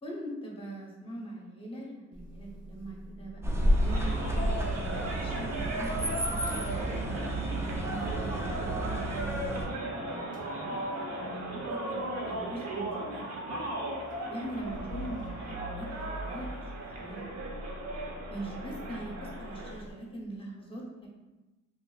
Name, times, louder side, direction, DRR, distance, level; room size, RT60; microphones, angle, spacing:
voice 1, 0.0-4.2 4.7-6.0 6.3-7.4 7.8-9.5 10.1-10.2 10.6-13.6 14.3-16.5 16.9-17.2 18.3-21.1, right 1 dB, 20° left, -2 dB, 0.8 m, -42 dB
Motor vehicle (road) / Engine starting / Idling, 2.1-9.8 10.1-19.9, right 1 dB, 25° right, 0.8 m, -46 dB
sound 1, 3.4-9.7, right 1 dB, 10° right, 0.3 m, -31 dB
sound 2, 3.6-19.8, right 1 dB, 60° right, 0.7 m, -37 dB
2.9 x 2.5 x 2.3 m, 1.1 s
cardioid pair, 90°, 30 cm